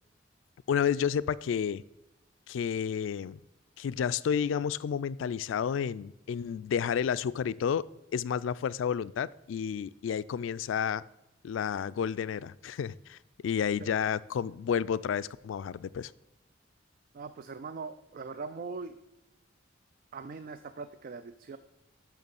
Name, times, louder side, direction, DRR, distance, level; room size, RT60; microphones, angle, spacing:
voice 1, 0.7-1.8 2.5-3.4 3.8-7.9 8.1-11.0 11.4-16.1, left 7 dB, 85° left, 18 dB, 0.3 m, -31 dB
voice 2, 17.1-18.9 20.1-21.6, right 4 dB, 45° right, 11 dB, 0.3 m, -41 dB
6.5 x 6.2 x 7.0 m, 0.96 s
head